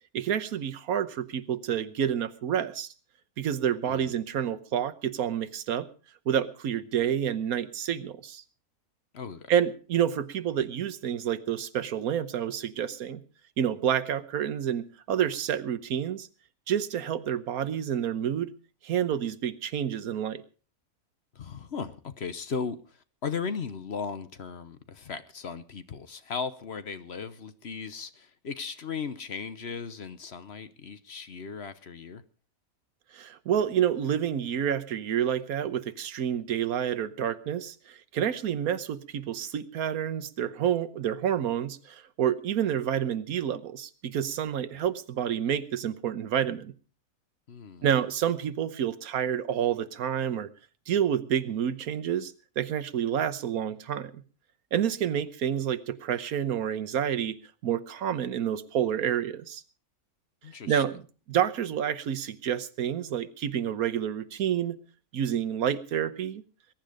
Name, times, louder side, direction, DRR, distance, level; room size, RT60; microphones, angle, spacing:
voice 1, 0.1-2.9 3.4-5.9 6.3-8.4 9.5-13.2 13.6-16.3 16.7-18.5 18.8-20.4 33.1-46.7 47.8-50.5 50.9-54.2 54.7-59.6 60.7-61.0 61.3-64.8 65.1-66.4, right 9 dB, 80° right, 14 dB, 1.4 m, -29 dB
voice 2, 9.1-9.5 21.3-32.2 44.7-44.8 47.5-47.9 60.4-60.8, left 5 dB, 50° left, 12 dB, 1.1 m, -37 dB
21.5 x 10.5 x 5.1 m, 0.38 s
omnidirectional pair, 1.5 m